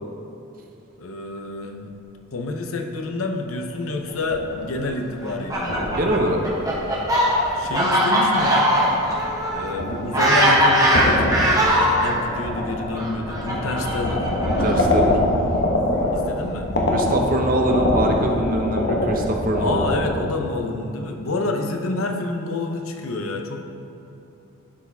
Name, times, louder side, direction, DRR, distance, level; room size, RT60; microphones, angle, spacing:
voice 1, 1.0-1.9 2.3-5.8 7.5-8.8 9.5-14.3 16.1-16.7 19.6-23.6, left 2 dB, 80° left, 4 dB, 0.7 m, -28 dB
sound 1, 4.1-4.8 5.3-8.0 8.4-20.1, left 1 dB, 55° left, 1.1 m, -25 dB
Fowl, 5.2-12.1 12.9-15.0, equal, 15° right, 1.1 m, -20 dB
voice 2, 6.0-6.4 14.5-15.2 16.9-20.0, right 1 dB, 40° right, 2 dB, 0.7 m, -23 dB
11.5 x 4.7 x 3.5 m, 2.9 s
head